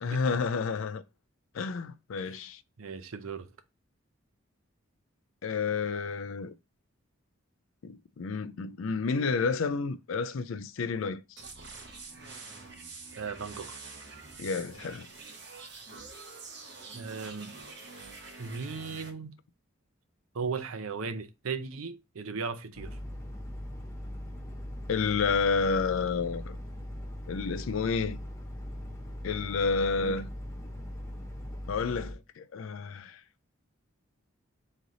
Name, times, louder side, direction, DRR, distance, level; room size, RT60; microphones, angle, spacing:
voice 1, 0.0-1.0 1.5-2.6 5.4-6.5 7.8-11.2 14.4-15.1 24.9-26.6 27.3-28.2 29.2-30.3 31.7-33.2, left 4 dB, 75° left, 0.4 m, -30 dB
voice 2, 2.8-3.5 13.1-13.8 16.9-17.5 18.4-19.3 20.3-23.0 30.0-30.2, right 5 dB, 85° right, 0.6 m, -37 dB
sound 1, 11.4-19.1, right 4 dB, 55° right, 1.1 m, -46 dB
sound 2, 22.7-32.1, left 1 dB, 15° left, 0.7 m, -40 dB
4.0 x 3.2 x 3.8 m
head